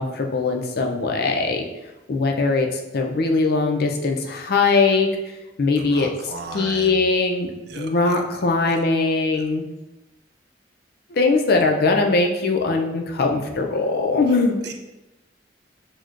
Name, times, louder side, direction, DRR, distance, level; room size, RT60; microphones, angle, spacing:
voice 1, 0.0-1.7 2.1-5.1 5.6-6.1 6.5-7.5 7.8-9.6 11.1-14.6, left 3 dB, 55° left, 2 dB, 0.4 m, -21 dB
voice 2, 5.8-7.0 7.7-8.2 8.7-8.8 9.3-9.5 14.6-14.7, right 3 dB, 60° right, 4 dB, 0.4 m, -37 dB
5.9 x 2.1 x 2.4 m, 1.0 s
head